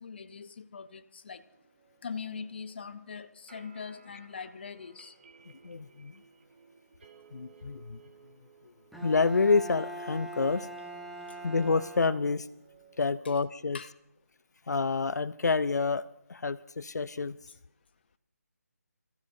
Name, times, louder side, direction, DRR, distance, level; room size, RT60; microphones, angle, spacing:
voice 1, 0.0-1.4 2.0-5.1 13.7-13.9, left 5 dB, 35° left, 0.7 m, -42 dB
sound 1, 1.3-13.8, right 6 dB, 40° right, 1.5 m, -59 dB
voice 2, 5.6-6.2 7.3-8.0 9.0-10.7 11.4-12.5 13.0-13.8 14.7-17.4, left 4 dB, 75° left, 0.5 m, -28 dB
Bowed string instrument, 8.9-12.6, right 1 dB, ahead, 0.5 m, -42 dB
27.5 x 15.0 x 2.7 m
figure-of-eight pair, 170°, 9 cm